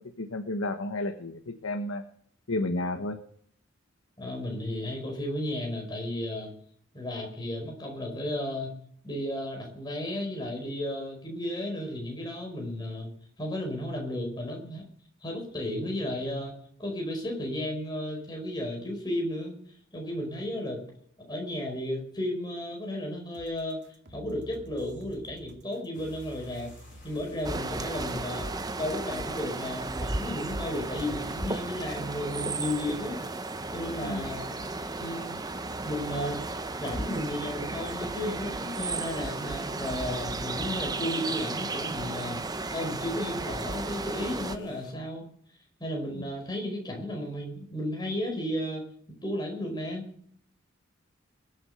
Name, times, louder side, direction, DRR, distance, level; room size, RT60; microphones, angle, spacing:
voice 1, 0.0-2.0 2.5-3.2 34.0-34.3 46.1-46.3, left 2 dB, 85° left, 5 dB, 1.3 m, -32 dB
voice 2, 4.2-6.5 6.9-8.8 9.0-13.1 13.4-14.8 15.2-19.5 19.9-20.8 21.2-23.8 24.1-26.7 27.0-28.5 28.8-33.2 33.7-34.5 35.0-35.3 35.8-36.4 36.8-42.4 42.7-45.3 45.8-48.8 49.2-50.0, left 1 dB, 20° left, 1 dB, 5.1 m, -33 dB
sound 1, 23.3-38.6, equal, 55° right, 2.3 m, -50 dB
sound 2, 25.9-44.9, left 3 dB, 40° left, 6.9 m, -57 dB
sound 3, 27.4-44.6, right 3 dB, 20° right, 0.7 m, -34 dB
22.0 x 8.2 x 6.7 m, 0.63 s
head